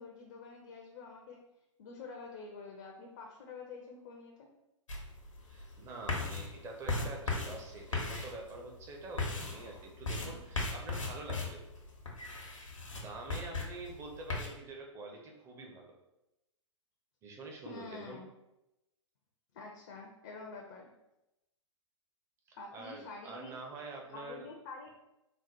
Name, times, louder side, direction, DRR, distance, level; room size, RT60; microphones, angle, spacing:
voice 1, 0.0-1.4 1.8-4.5 17.6-18.3 19.5-20.9 22.6-23.5 24.1-24.9, left 4 dB, 35° left, 1 dB, 0.6 m, -47 dB
sound 1, 4.9-14.5, left 3 dB, 75° left, 0.9 m, -38 dB
voice 2, 5.5-11.6 12.9-15.9 17.2-18.2 22.5-24.5, right 3 dB, 15° right, 1 dB, 0.6 m, -46 dB
4.0 x 2.1 x 4.5 m, 0.92 s
figure-of-eight pair, 115°, 16 cm